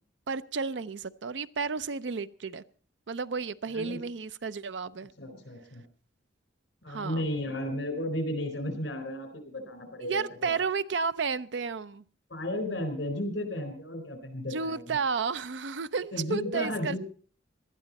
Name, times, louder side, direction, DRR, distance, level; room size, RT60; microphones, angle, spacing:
voice 1, 0.3-2.6 3.1-5.1 6.9-7.3 10.0-12.0 14.4-17.0, right 5 dB, 70° right, 0.6 m, -32 dB
voice 2, 5.2-5.8 6.8-10.6 12.3-15.0 16.1-17.0, left 1 dB, 70° left, 4.2 m, -34 dB
19.0 x 12.5 x 4.1 m
head